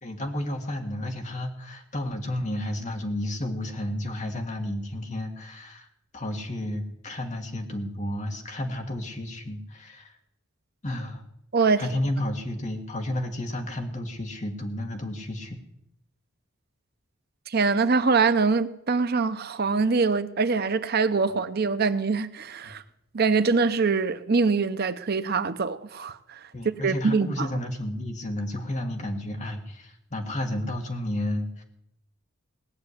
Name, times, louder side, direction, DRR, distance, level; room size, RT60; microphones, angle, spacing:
voice 1, 0.0-5.9 6.1-10.2 10.8-11.2 11.8-15.6 26.5-31.6, left 1 dB, 35° left, 2.0 m, -32 dB
voice 2, 11.5-11.8 17.5-22.8 23.1-27.5, right 4 dB, 50° right, 0.7 m, -24 dB
18.0 x 6.8 x 9.7 m
head